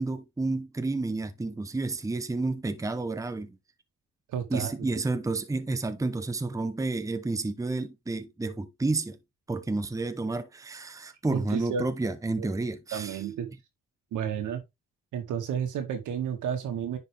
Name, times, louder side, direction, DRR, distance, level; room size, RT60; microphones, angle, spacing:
voice 1, 0.0-3.6 4.5-9.2 9.5-13.2, right 3 dB, 10° right, 0.8 m, -30 dB
voice 2, 4.3-4.9 11.3-11.9 12.4-12.5 12.9-13.5 14.1-14.6 15.1-17.0, right 8 dB, 80° right, 2.0 m, -31 dB
9.9 x 4.0 x 3.4 m
cardioid pair, 90°, 30 cm